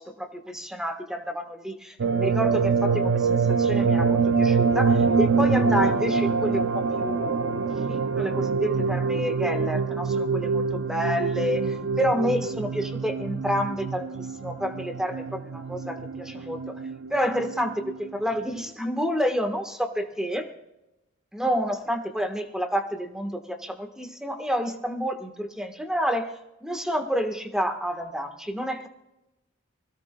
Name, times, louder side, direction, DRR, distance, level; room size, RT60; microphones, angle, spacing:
voice 1, 0.0-16.8 17.1-20.5 21.3-28.9, equal, 5° right, 5 dB, 1.3 m, -29 dB
sound 1, 2.0-18.1 18.5-18.6, right 5 dB, 60° right, 0.5 m, -25 dB
25.0 x 17.0 x 2.3 m, 0.95 s
head